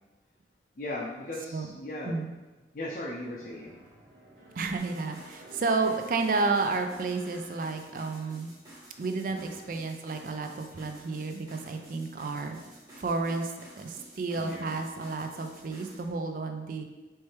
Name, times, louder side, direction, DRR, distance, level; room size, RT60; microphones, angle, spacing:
voice 1, 0.8-2.3 2.7-3.8 9.3-9.6 14.4-14.8, left 1 dB, 50° left, -4 dB, 0.5 m, -38 dB
sound 1, 3.0-8.5 8.9-9.0, right 1 dB, 80° right, 1.2 m, -54 dB
voice 2, 4.6-8.5 9.0-12.6 13.0-16.8, right 3 dB, 50° right, 5 dB, 0.4 m, -31 dB
sound 2, 4.8-16.1, right 1 dB, 20° right, 1.2 m, -52 dB
4.4 x 3.3 x 3.2 m, 1.2 s
head